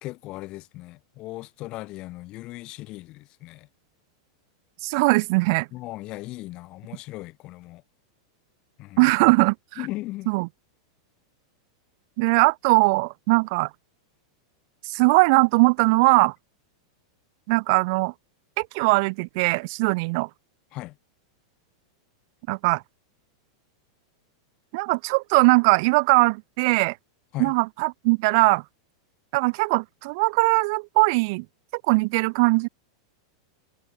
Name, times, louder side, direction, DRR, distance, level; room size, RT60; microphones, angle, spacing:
voice 1, 0.0-3.7 5.7-7.8 8.8-9.1 9.8-10.3 20.7-21.0 27.3-27.5, left 19 dB, 40° left, 1.6 m, -37 dB
voice 2, 4.8-5.7 9.0-9.8 10.3-10.5 12.2-13.7 14.8-16.3 17.5-18.1 18.6-20.3 22.5-22.8 24.7-27.0 27.4-28.6 29.3-31.4 31.7-32.7, right 28 dB, 55° right, 1.3 m, -20 dB
supercardioid pair, 145°, 2 cm